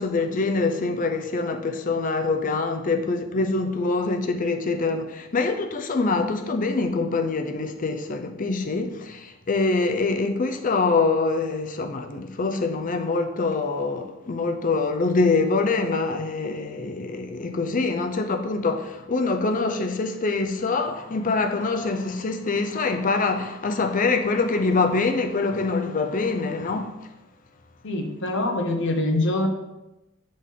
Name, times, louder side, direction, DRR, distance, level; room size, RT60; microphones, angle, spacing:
voice 1, 0.0-26.9, left 3 dB, 40° left, 0.5 m, -24 dB
voice 2, 27.8-29.5, left 2 dB, 60° left, 0.9 m, -24 dB
8.1 x 3.9 x 3.7 m
head